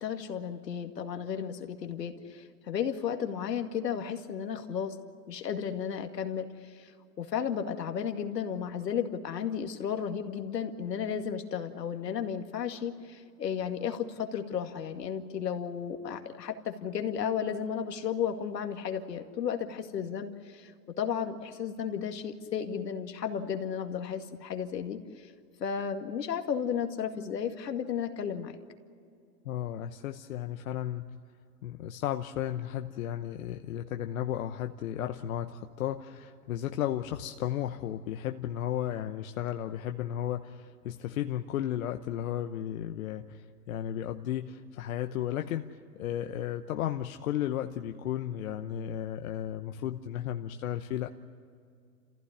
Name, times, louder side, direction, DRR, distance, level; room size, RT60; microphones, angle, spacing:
voice 1, 0.0-5.0 5.3-6.9 7.2-20.7 21.0-25.0 25.6-28.6, left 8 dB, 85° left, 6 dB, 2.2 m, -33 dB
voice 2, 29.4-31.1 31.6-45.6 46.0-51.1, left 11 dB, 55° left, 6 dB, 1.0 m, -34 dB
29.0 x 15.5 x 10.0 m, 2.4 s
hypercardioid pair, 140°, 48 cm